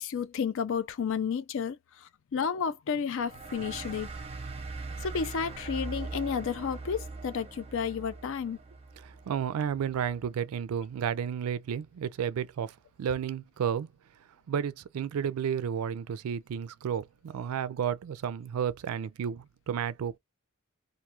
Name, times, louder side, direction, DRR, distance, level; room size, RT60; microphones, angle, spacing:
voice 1, 0.0-4.1 5.0-8.6, left 6 dB, 60° left, 0.4 m, -32 dB
sound 1, 3.2-10.3, right 3 dB, 30° right, 0.6 m, -41 dB
voice 2, 9.0-13.9 14.5-20.2, right 8 dB, 80° right, 0.3 m, -32 dB
2.5 x 2.3 x 2.9 m
head